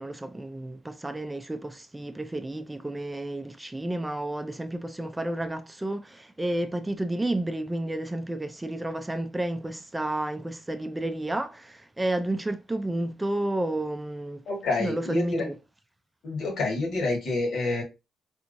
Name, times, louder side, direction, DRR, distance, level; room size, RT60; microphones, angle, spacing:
voice 1, 0.0-14.4 14.8-15.6, right 1 dB, 10° right, 0.4 m, -31 dB
voice 2, 14.5-15.4 16.2-17.8, left 3 dB, 75° left, 1.8 m, -28 dB
3.5 x 3.0 x 2.6 m
cardioid pair, 90°, 0 cm